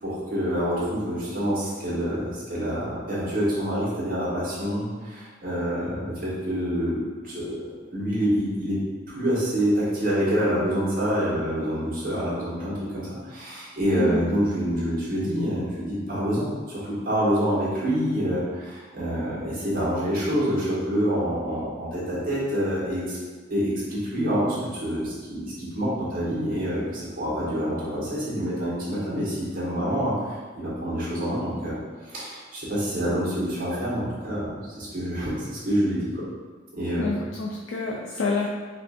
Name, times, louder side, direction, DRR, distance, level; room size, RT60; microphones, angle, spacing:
voice 1, 0.0-7.0 7.2-8.8 9.1-23.2 23.5-31.8 32.0-36.2 36.7-37.3, equal, 45° right, -9 dB, 1.4 m, -27 dB
voice 2, 37.0-38.5, left 3 dB, 65° left, -1 dB, 0.4 m, -28 dB
5.0 x 2.4 x 2.6 m, 1.4 s
head